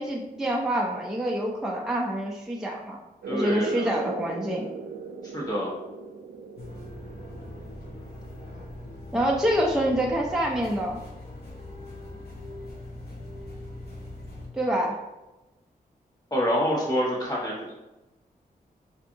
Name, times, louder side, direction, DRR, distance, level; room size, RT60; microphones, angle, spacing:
voice 1, 0.0-3.0 3.3-4.7 9.1-11.0 14.5-15.0, right 1 dB, 5° right, -2 dB, 0.4 m, -26 dB
sound 1, 3.2-10.4, right 4 dB, 90° right, 0.4 m, -40 dB
voice 2, 3.3-3.9 5.3-5.7 16.3-17.7, equal, 25° left, -5 dB, 1.3 m, -27 dB
sound 2, 6.6-14.5, left 1 dB, 80° left, 0.9 m, -41 dB
4.2 x 2.6 x 2.7 m, 1.0 s
wide cardioid pair, 120°, 16 cm